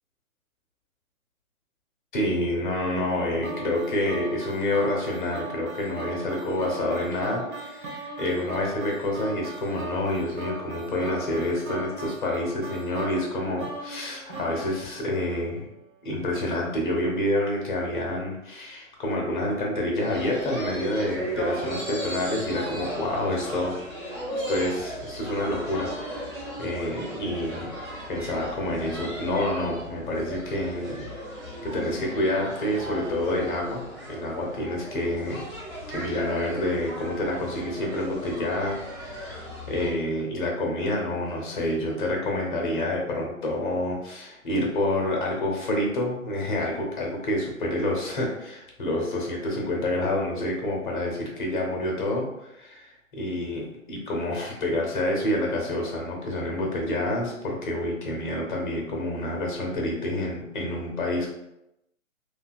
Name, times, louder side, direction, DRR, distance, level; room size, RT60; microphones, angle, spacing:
voice 1, 2.1-15.7 16.0-26.3 26.6-27.7 28.1-31.1 31.6-35.4 35.9-61.3, left 1 dB, 40° left, -1 dB, 0.8 m, -28 dB
sound 1, 3.4-15.6, right 3 dB, 40° right, 0.6 m, -38 dB
sound 2, 20.0-39.9, equal, ahead, 0.7 m, -36 dB
2.7 x 2.3 x 2.4 m, 0.88 s
figure-of-eight pair, 130°, 40 cm